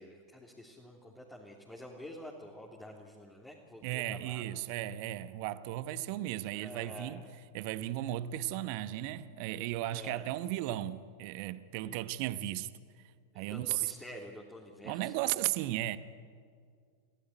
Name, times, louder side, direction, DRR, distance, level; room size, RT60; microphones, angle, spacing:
voice 1, 0.0-4.6 6.5-7.2 9.9-10.3 13.3-15.3, equal, 10° left, 3.1 m, -48 dB
voice 2, 3.8-7.2 7.5-12.7 13.3-13.9 14.8-16.0, right 14 dB, 45° right, 1.1 m, -35 dB
29.0 x 17.0 x 9.6 m
figure-of-eight pair, 90°, 0 cm